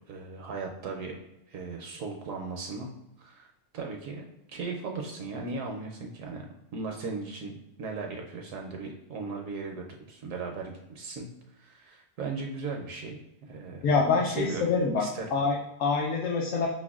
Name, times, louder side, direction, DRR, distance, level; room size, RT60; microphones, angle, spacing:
voice 1, 0.1-1.2 1.5-2.9 3.2-3.5 3.7-6.5 6.7-11.3 11.6-14.6 15.0-15.3, right 4 dB, 70° right, 2 dB, 0.9 m, -37 dB
voice 2, 13.8-15.0 15.3-16.7, left 4 dB, 65° left, -2 dB, 0.9 m, -26 dB
5.9 x 2.1 x 2.3 m, 0.93 s
omnidirectional pair, 1.5 m